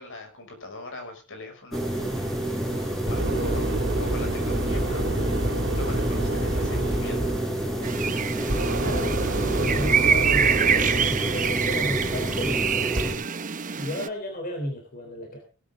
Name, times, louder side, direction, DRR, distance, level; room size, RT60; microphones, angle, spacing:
voice 1, 0.0-1.8 2.8-5.4 5.7-7.4, left 2 dB, 60° left, 5 dB, 6.0 m, -41 dB
sound 1, 1.7-13.1, right 1 dB, ahead, 6.9 m, -29 dB
sound 2, 2.6-13.0, right 1 dB, 55° right, 2.7 m, -29 dB
sound 3, 7.8-14.1, right 7 dB, 35° right, 0.8 m, -26 dB
voice 2, 8.7-13.0 13.8-15.4, equal, 40° left, 3 dB, 3.5 m, -34 dB
18.0 x 12.0 x 3.7 m, 0.34 s
head